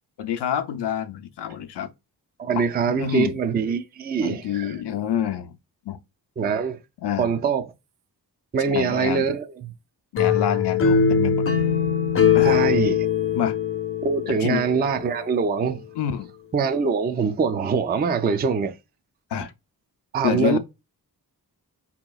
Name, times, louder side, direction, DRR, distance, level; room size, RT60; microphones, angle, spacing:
voice 1, 0.2-1.9 2.6-3.4 4.2-5.6 5.9-6.0 7.0-7.4 8.7-9.3 10.1-11.5 12.3-12.7 13.3-13.6 14.3-14.6 15.9-16.3 19.3-19.5 20.2-20.6, left 9 dB, 85° left, 0.6 m, -27 dB
voice 2, 2.4-4.7 6.4-6.8 7.2-7.6 8.5-9.7 12.4-13.1 14.0-15.8 16.5-18.7 20.1-20.6, right 6 dB, 25° right, 0.3 m, -23 dB
sound 1, 10.2-15.1, left 7 dB, 35° left, 0.5 m, -21 dB
4.7 x 2.9 x 2.3 m
wide cardioid pair, 110°, 40 cm